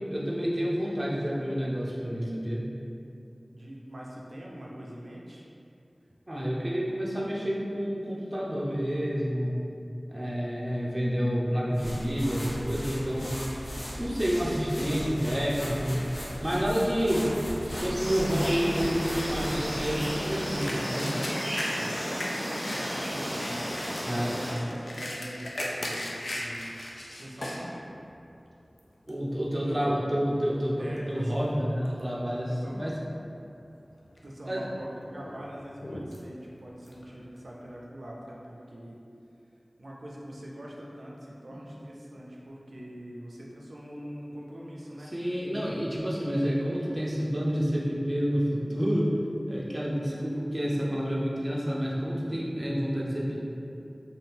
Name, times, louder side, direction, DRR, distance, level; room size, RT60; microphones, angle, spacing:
voice 1, 0.1-2.7 6.3-9.6 10.1-13.4 14.0-16.0 16.4-17.3 17.8-21.2 24.0-24.3 29.1-32.9 34.5-34.7 41.5-41.6 45.0-49.1 49.5-53.5, equal, 30° right, -5 dB, 0.6 m, -29 dB
voice 2, 3.5-5.4 21.7-22.0 22.7-26.6 27.2-27.7 29.6-29.8 30.8-31.3 32.5-32.9 34.2-39.0 39.8-45.1 47.0-47.1, equal, 80° right, -4 dB, 0.4 m, -43 dB
sound 1, 11.7-20.3, equal, 65° left, 0.8 m, -37 dB
sound 2, 17.9-24.5, equal, ahead, 1.4 m, -33 dB
sound 3, 20.6-27.7 28.2-28.3 28.8-29.2 29.9-30.1 30.4-31.5 31.8-32.4 32.8-32.9 33.7-34.3 34.7-37.8, left 1 dB, 85° left, 0.3 m, -38 dB
2.8 x 2.4 x 3.4 m, 2.7 s
wide cardioid pair, 45°, 0 cm